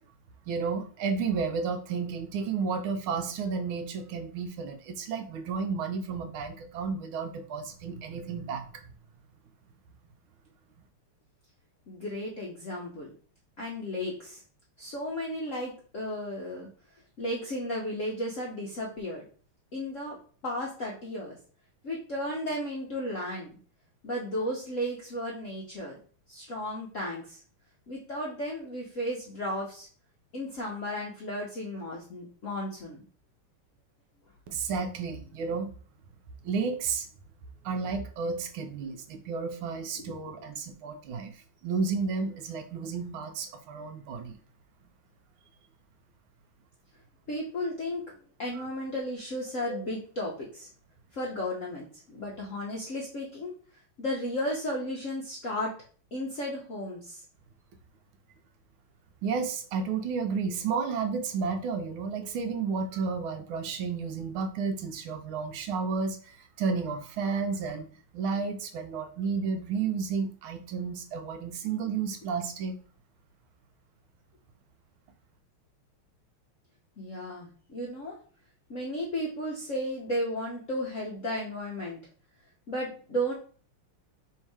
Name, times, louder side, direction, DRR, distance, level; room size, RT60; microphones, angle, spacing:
voice 1, 0.5-8.9 34.5-35.7 36.4-37.1 37.6-44.4 48.5-48.7 49.7-49.8 59.2-67.9 68.1-72.8, right 5 dB, 75° right, 6 dB, 1.4 m, -32 dB
voice 2, 11.9-13.1 13.6-14.4 14.8-16.7 17.2-19.2 19.7-20.2 20.4-21.4 21.8-23.6 24.0-26.0 26.3-27.4 27.9-29.9 30.3-33.0 40.0-40.1 47.3-48.1 48.4-50.7 51.1-53.5 54.0-55.7 56.1-57.2 77.0-78.2 78.7-82.0 82.7-83.3, equal, 65° left, -3 dB, 0.8 m, -34 dB
3.5 x 2.8 x 4.6 m, 0.42 s
omnidirectional pair, 2.4 m